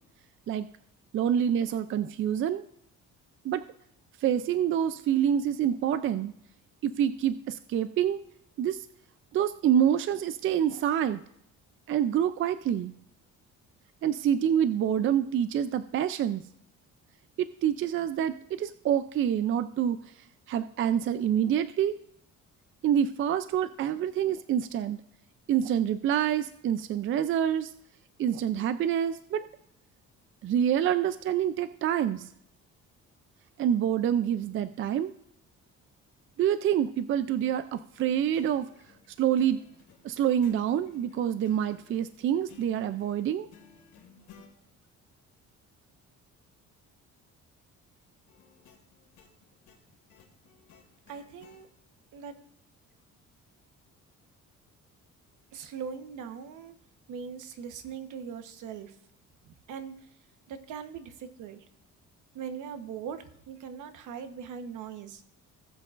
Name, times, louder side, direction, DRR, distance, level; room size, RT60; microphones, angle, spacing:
voice 1, 1.1-2.6 3.4-3.6 4.2-6.3 6.8-8.2 8.6-8.9 9.3-11.2 11.9-12.9 14.0-16.4 17.4-20.0 20.5-21.9 22.8-25.0 25.5-27.7 28.2-29.4 30.4-32.3 33.6-35.1 36.4-38.7 39.2-39.6 40.0-43.5, right 9 dB, 45° right, 12 dB, 0.4 m, -27 dB
sound 1, 38.0-44.5 48.3-51.6, left 6 dB, 80° left, 2.2 m, -57 dB
voice 2, 51.1-51.7 52.1-52.3 55.5-56.7 57.1-59.0 59.4-60.1 60.5-61.6 62.3-65.2, right 7 dB, 80° right, 8 dB, 1.1 m, -40 dB
18.0 x 7.7 x 2.5 m, 0.73 s
cardioid pair, 150°, 30 cm